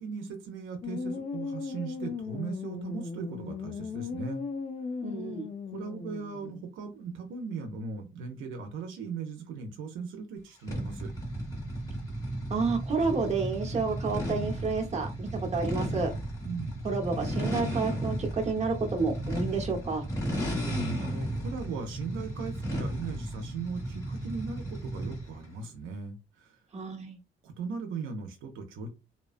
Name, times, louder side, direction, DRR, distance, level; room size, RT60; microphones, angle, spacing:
voice 1, 0.0-4.4 5.7-11.1 16.4-16.8 20.5-26.6 27.4-28.9, right 5 dB, 85° right, 4 dB, 0.6 m, -38 dB
sound 1, 0.8-6.7, left 5 dB, 35° left, 0.4 m, -37 dB
voice 2, 5.0-5.5 12.5-16.1 16.8-20.0 26.7-27.2, right 4 dB, 35° right, 2 dB, 1.0 m, -30 dB
sound 2, 10.7-25.4, right 1 dB, 15° left, 1.5 m, -34 dB
2.7 x 2.2 x 2.4 m, 0.27 s
cardioid pair, 90°, 20 cm